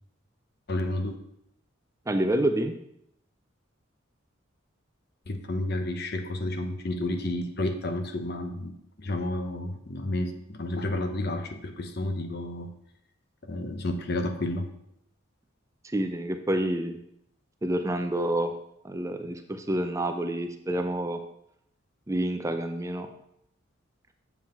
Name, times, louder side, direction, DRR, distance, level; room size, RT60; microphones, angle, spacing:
voice 1, 0.7-1.2 5.3-12.7 13.4-14.7, left 1 dB, 50° left, 7 dB, 0.9 m, -31 dB
voice 2, 2.1-2.7 15.8-17.0 17.6-18.5 18.8-21.2 22.1-23.1, right 1 dB, 15° right, 7 dB, 0.4 m, -28 dB
7.6 x 7.1 x 4.4 m, 0.76 s
head